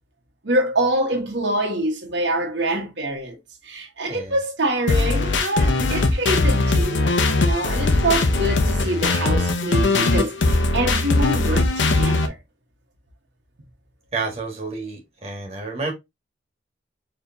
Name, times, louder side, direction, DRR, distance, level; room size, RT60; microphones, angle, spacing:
voice 1, 0.4-3.4 3.6-12.4, right 1 dB, 80° right, 1.3 m, -25 dB
voice 2, 4.0-4.4 14.1-15.9, right 4 dB, 35° right, 1.6 m, -30 dB
sound 1, 4.9-12.3, left 2 dB, 85° left, 0.7 m, -20 dB
4.5 x 3.3 x 2.6 m
head